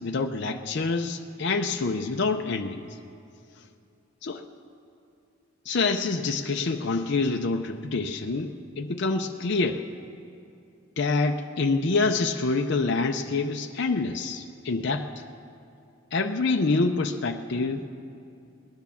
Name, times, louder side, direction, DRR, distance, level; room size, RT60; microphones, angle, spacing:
voice 1, 0.0-2.9 4.2-4.4 5.7-9.8 11.0-15.1 16.1-17.9, left 3 dB, 55° left, 4 dB, 0.6 m, -26 dB
18.5 x 10.5 x 7.1 m, 2.6 s
head